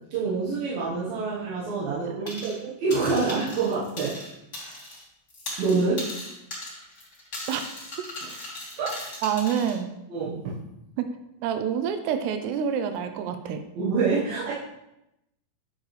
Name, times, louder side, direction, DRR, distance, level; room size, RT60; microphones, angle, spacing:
voice 1, 0.1-4.2 5.6-6.0 8.8-9.1 10.1-10.5 13.7-14.5, right 4 dB, 65° right, -8 dB, 2.6 m, -26 dB
sound 1, 2.3-2.6 2.9-5.0 5.3-9.8, left 1 dB, 80° left, 0.6 m, -38 dB
voice 2, 9.2-9.9 11.0-11.1 11.4-13.6, right 8 dB, 85° right, 8 dB, 2.3 m, -27 dB
9.3 x 7.1 x 3.3 m, 0.86 s
omnidirectional pair, 5.5 m